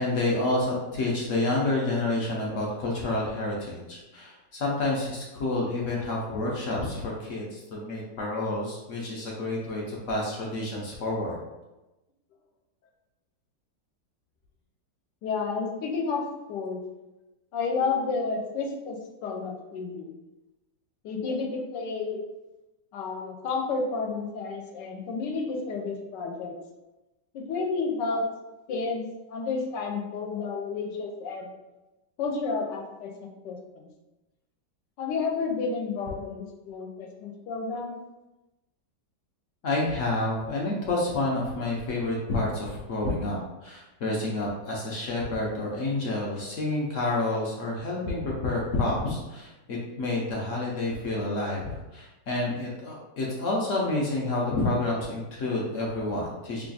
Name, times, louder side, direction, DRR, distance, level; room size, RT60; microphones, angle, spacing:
voice 1, 0.0-11.4 39.6-56.7, left 2 dB, 65° left, -3 dB, 0.8 m, -29 dB
voice 2, 15.2-16.8 17.5-19.0 19.2-20.1 21.0-22.2 22.9-26.5 27.3-28.2 28.7-29.0 29.3-31.5 32.2-33.1 33.4-33.9 35.0-37.9, left 4 dB, 85° left, 2 dB, 1.3 m, -31 dB
3.2 x 2.4 x 3.9 m, 1.0 s
omnidirectional pair, 1.9 m